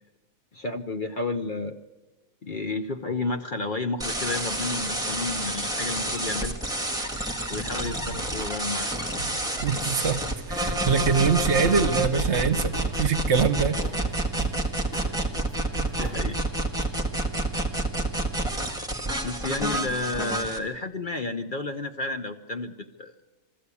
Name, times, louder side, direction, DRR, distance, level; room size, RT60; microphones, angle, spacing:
voice 1, 0.5-1.8 2.4-6.6 7.5-8.9 16.0-16.4 19.2-23.1, left 3 dB, 45° left, 0.8 m, -31 dB
sound 1, 4.0-20.6, right 1 dB, 5° right, 1.6 m, -28 dB
sound 2, 7.8-8.6 9.0-10.3 10.6-10.9 11.1-13.0 13.3-14.6 14.9-15.2 15.5-16.5, right 4 dB, 65° left, 7.2 m, -39 dB
voice 2, 9.5-13.8, right 6 dB, 55° right, 1.0 m, -24 dB
21.5 x 14.5 x 8.4 m
omnidirectional pair, 1.5 m